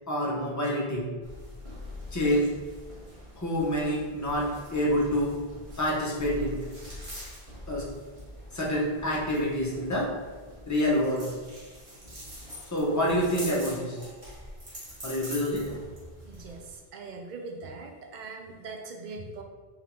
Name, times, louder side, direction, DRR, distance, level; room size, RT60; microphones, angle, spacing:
voice 1, 0.1-1.2 2.1-2.7 3.4-6.7 7.7-8.0 8.5-10.3 10.7-11.4 12.7-14.1 15.0-15.8, equal, 20° left, -4 dB, 0.7 m, -27 dB
sound 1, 1.2-16.8, left 1 dB, 35° right, 1.2 m, -44 dB
voice 2, 16.2-19.4, right 3 dB, 55° right, 3 dB, 0.6 m, -41 dB
3.6 x 3.5 x 3.0 m, 1.4 s
omnidirectional pair, 1.0 m